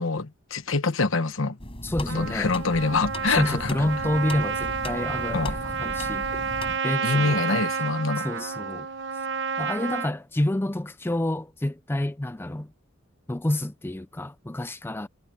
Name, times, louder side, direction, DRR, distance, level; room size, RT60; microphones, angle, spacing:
voice 1, 0.0-1.6 2.1-3.7 5.3-5.5 7.0-8.3, left 3 dB, 65° left, 1.2 m, -25 dB
sound 1, 1.6-6.8, left 1 dB, 25° left, 4.9 m, -37 dB
voice 2, 1.8-2.5 3.3-6.4 6.8-8.9 9.1-9.2 9.6-12.7 13.3-15.1, left 1 dB, 10° left, 0.4 m, -29 dB
Trumpet, 2.1-10.1, right 5 dB, 60° right, 1.2 m, -30 dB
head